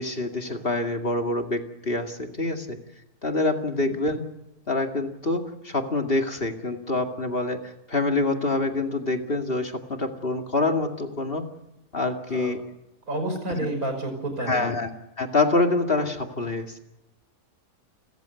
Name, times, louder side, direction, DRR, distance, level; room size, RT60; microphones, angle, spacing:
voice 1, 0.0-2.8 3.2-4.2 4.7-11.5 11.9-12.6 14.5-14.9 15.2-16.7, left 2 dB, 40° left, 4 dB, 2.5 m, -26 dB
voice 2, 13.1-14.7, right 1 dB, 85° right, 6 dB, 5.9 m, -30 dB
29.5 x 15.0 x 8.2 m, 0.91 s
omnidirectional pair, 1.5 m